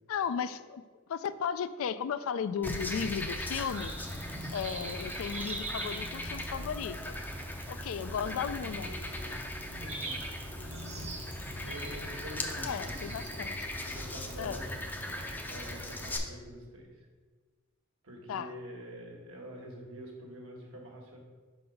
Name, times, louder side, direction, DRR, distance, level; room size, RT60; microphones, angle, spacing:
voice 1, 0.1-0.8 1.1-3.9 4.5-7.2 7.7-9.0 12.6-13.5 14.4-14.6 18.3-18.5, left 7 dB, 75° left, 13 dB, 0.3 m, -35 dB
Frog, 2.6-16.2, left 1 dB, 10° left, 0.5 m, -39 dB
sound 1, 3.0-16.1, right 2 dB, 35° right, 0.8 m, -45 dB
sound 2, 8.8-16.3, left 3 dB, 45° left, 0.7 m, -55 dB
voice 2, 9.8-10.2 11.6-13.2 13.8-14.9 15.5-16.9 18.0-21.2, equal, 70° right, 0 dB, 1.3 m, -46 dB
5.7 x 4.0 x 5.2 m, 1.4 s
head